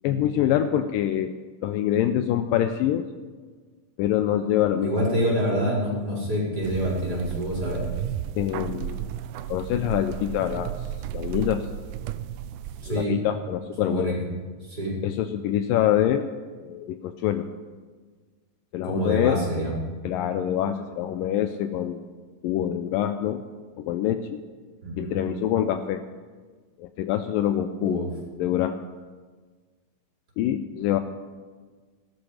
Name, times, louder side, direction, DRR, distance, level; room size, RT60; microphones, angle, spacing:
voice 1, 0.0-1.3 1.6-3.1 4.0-4.9 8.4-9.0 9.5-10.7 11.1-11.7 12.9-14.1 15.0-16.3 16.6-17.5 18.7-19.4 20.0-22.0 22.4-23.4 23.8-24.4 25.0-26.0 26.8-28.1 28.4-28.8 30.4-31.0, left 11 dB, 80° left, 8 dB, 2.1 m, -25 dB
voice 2, 4.8-7.8 12.8-13.2 13.8-14.1 14.6-14.9 18.8-19.7 24.8-25.2 27.8-28.1, equal, 25° right, -6 dB, 4.6 m, -26 dB
sound 1, 6.6-13.1, right 11 dB, 90° right, 1.8 m, -34 dB
16.5 x 12.0 x 4.9 m, 1.4 s
omnidirectional pair, 4.2 m